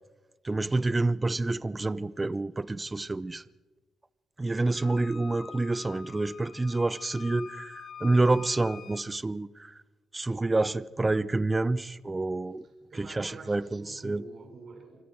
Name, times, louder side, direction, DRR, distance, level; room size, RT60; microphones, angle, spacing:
voice 1, 0.4-3.4 4.4-9.8 10.1-12.6 13.0-14.2, right 2 dB, 20° right, 0.6 m, -28 dB
Wind instrument woodwind instrument, 4.8-9.1, left 7 dB, 55° left, 1.8 m, -45 dB
voice 2, 12.6-15.0, right 4 dB, 50° right, 5.9 m, -47 dB
26.0 x 24.5 x 4.6 m
cardioid pair, 90°, 0 cm